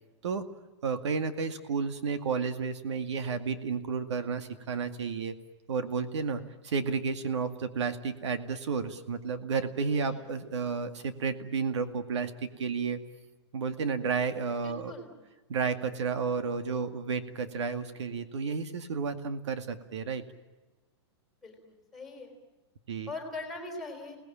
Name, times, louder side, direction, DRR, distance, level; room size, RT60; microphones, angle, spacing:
voice 1, 0.8-5.4 5.7-13.0 13.5-14.9 15.5-20.2 22.9-23.1, right 5 dB, 85° right, 9 dB, 2.2 m, -32 dB
voice 2, 14.6-15.1 21.4-21.6 21.9-22.3 23.1-24.2, left 2 dB, ahead, 3 dB, 4.5 m, -41 dB
29.0 x 19.0 x 8.8 m, 1.2 s
supercardioid pair, 170°, 14 cm